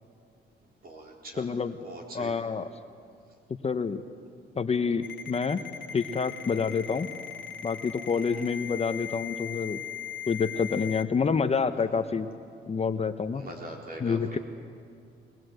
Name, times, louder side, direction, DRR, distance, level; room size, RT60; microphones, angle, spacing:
voice 1, 0.8-1.5 1.8-2.3 8.1-8.5 13.3-14.4, right 1 dB, 50° right, 1 dB, 4.0 m, -43 dB
voice 2, 1.4-1.7 2.1-2.7 3.6-4.0 4.6-5.6 5.9-7.1 7.6-9.8 10.3-12.3 12.7-13.5 14.0-14.4, left 5 dB, 30° left, 10 dB, 0.8 m, -28 dB
Ringtone, 5.0-11.0, left 9 dB, 70° left, 1.6 m, -39 dB
21.5 x 20.0 x 7.9 m, 2.4 s
cardioid pair, 90°, 20 cm